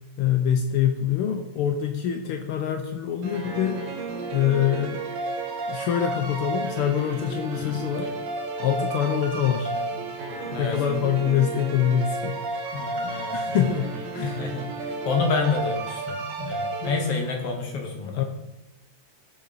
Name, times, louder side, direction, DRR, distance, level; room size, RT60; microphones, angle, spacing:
voice 1, 0.2-3.8 4.3-5.0 5.7-8.1 8.6-9.7 10.6-12.4 13.3-14.3 18.1-18.2, left 9 dB, 80° left, 6 dB, 1.2 m, -25 dB
sound 1, 3.2-17.5, right 3 dB, 65° right, 2.4 m, -32 dB
voice 2, 7.6-8.1 9.7-9.9 10.5-10.8 12.7-13.6 14.2-18.3, left 4 dB, 55° left, 2 dB, 2.3 m, -29 dB
17.0 x 7.3 x 4.1 m, 0.94 s
omnidirectional pair, 3.4 m